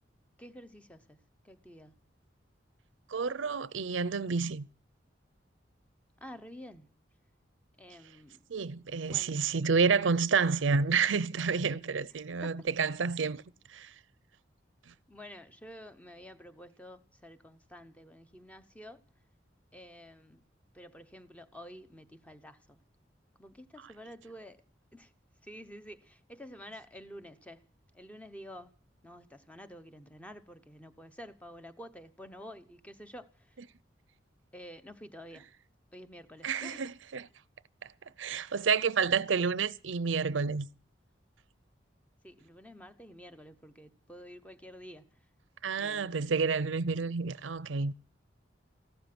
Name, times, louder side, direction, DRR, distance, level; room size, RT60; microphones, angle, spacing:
voice 1, 0.4-2.1 6.2-7.0 7.8-8.5 9.0-9.4 12.4-12.5 15.1-19.0 19.7-20.5 20.7-22.8 23.4-24.6 24.9-25.1 25.4-27.6 27.9-28.7 29.0-33.6 34.5-35.5 35.9-36.9 42.2-45.3 45.7-46.3, equal, 5° left, 0.8 m, -50 dB
voice 2, 3.1-4.7 8.5-13.4 13.7-13.9 36.4-37.3 38.2-40.7 45.6-47.9, right 5 dB, 90° right, 0.6 m, -29 dB
14.5 x 12.5 x 6.0 m
head